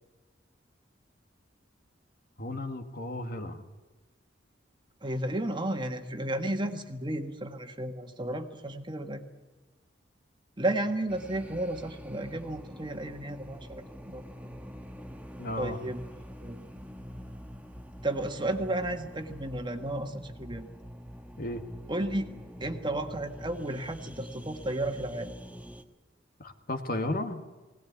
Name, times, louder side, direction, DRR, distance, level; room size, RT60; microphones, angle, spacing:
voice 1, 2.4-3.6 15.4-15.8 21.4-21.6 26.4-27.4, left 1 dB, 50° left, 7 dB, 1.8 m, -34 dB
voice 2, 5.0-9.2 10.6-14.2 15.6-16.0 16.4-16.6 18.0-20.7 21.9-22.3 22.6-25.4, right 1 dB, 25° right, 6 dB, 1.6 m, -33 dB
sound 1, 11.1-25.8, equal, 10° right, 1.3 m, -45 dB
21.0 x 18.0 x 9.5 m, 1.2 s
head